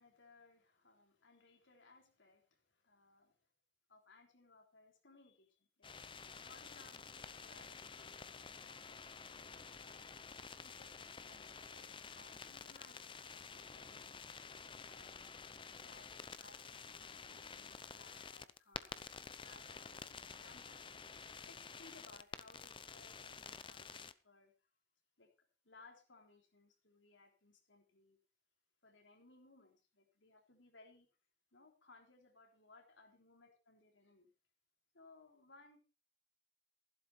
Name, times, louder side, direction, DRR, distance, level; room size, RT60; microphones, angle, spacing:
voice 1, 0.0-3.4 3.9-10.2 10.6-15.5 15.8-21.1 21.5-24.5 25.2-28.2 28.8-31.1 31.5-34.3 34.9-35.8, left 3 dB, 90° left, 3 dB, 3.6 m, -64 dB
sound 1, 5.8-24.1, left 5 dB, 25° left, 0.7 m, -51 dB
15.0 x 12.0 x 4.3 m, 0.32 s
head